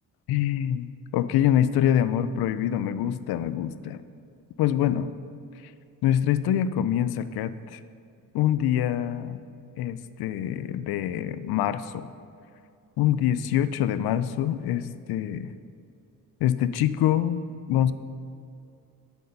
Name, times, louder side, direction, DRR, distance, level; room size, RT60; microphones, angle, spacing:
voice 1, 0.3-4.0 4.6-5.1 6.0-7.8 8.3-9.4 9.8-12.1 13.0-15.5 16.4-17.9, left 10 dB, 85° left, 14 dB, 0.5 m, -25 dB
8.6 x 8.3 x 5.4 m, 2.5 s
cardioid pair, 170°, 36 cm